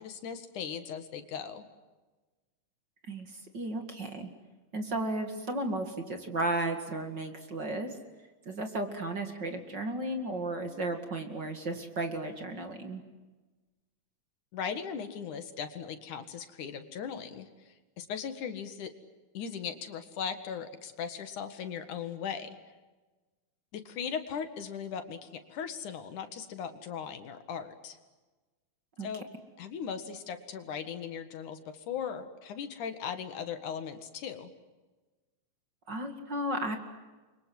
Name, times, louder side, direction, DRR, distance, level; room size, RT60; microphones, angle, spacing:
voice 1, 0.0-1.6 14.5-18.9 19.3-22.6 23.7-28.0 29.0-29.2 29.6-34.5, left 7 dB, 70° left, 9 dB, 3.2 m, -38 dB
voice 2, 3.1-4.3 4.7-8.0 8.5-13.0 29.0-29.1 35.9-36.8, right 2 dB, 35° right, 6 dB, 2.5 m, -34 dB
29.5 x 24.5 x 7.9 m, 1.2 s
omnidirectional pair, 3.7 m